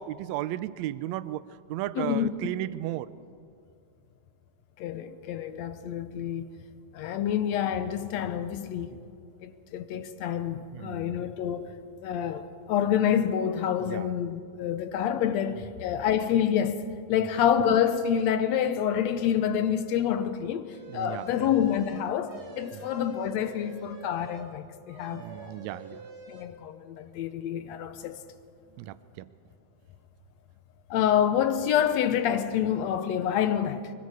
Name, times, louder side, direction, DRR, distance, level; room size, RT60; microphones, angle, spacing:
voice 1, 0.0-1.4 1.7-3.1 8.9-9.0 10.7-11.2 13.8-14.1 15.6-15.7 20.9-21.5 22.7-22.8 25.1-26.0 28.8-29.3, right 14 dB, 80° right, 1.8 m, -35 dB
voice 2, 2.0-2.3 4.8-6.5 6.9-8.9 9.4-11.7 12.0-25.5 25.9-26.0 26.3-28.2 30.9-33.9, left 9 dB, 75° left, 2.0 m, -27 dB
sound 1, 20.7-24.5 24.9-26.4, right 3 dB, 40° right, 2.1 m, -47 dB
25.0 x 22.5 x 4.8 m
omnidirectional pair, 3.3 m